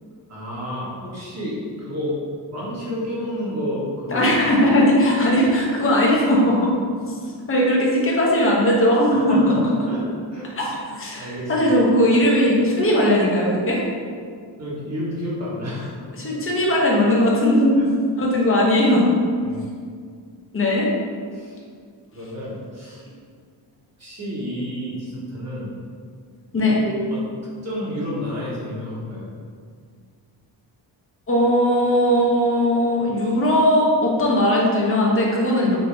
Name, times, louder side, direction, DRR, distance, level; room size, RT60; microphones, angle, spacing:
voice 1, 0.3-2.2 2.5-4.3 7.5-7.6 9.1-10.0 10.3-10.5 10.8-11.7 14.6-16.0 17.8-17.9 19.4-19.6 21.3-21.6 22.1-23.0 24.0-25.7 26.6-27.2 27.6-29.3, equal, 35° right, -7 dB, 1.3 m, -30 dB
voice 2, 4.1-6.7 7.1-7.2 7.5-9.5 10.6-10.7 10.9-13.8 16.2-17.7 18.2-19.1 20.5-20.9 26.5-26.8 31.3-35.8, left 1 dB, 30° left, -3 dB, 0.9 m, -18 dB
5.4 x 2.8 x 3.4 m, 2.1 s
wide cardioid pair, 155°, 45 cm